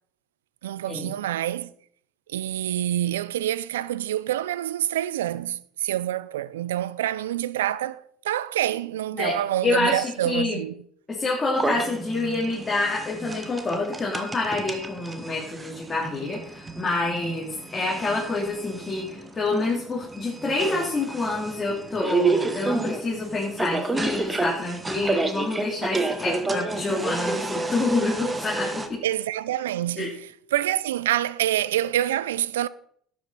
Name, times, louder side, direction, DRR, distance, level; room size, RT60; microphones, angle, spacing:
voice 1, 0.6-1.7 2.3-10.7 29.0-32.7, right 12 dB, 85° right, 0.4 m, -27 dB
voice 2, 9.6-10.6 11.1-29.0 30.0-30.1, left 2 dB, 25° left, 3.3 m, -27 dB
sound 1, 11.5-28.9, right 3 dB, 20° right, 1.4 m, -30 dB
12.0 x 8.6 x 4.3 m
hypercardioid pair, 65°, 0 cm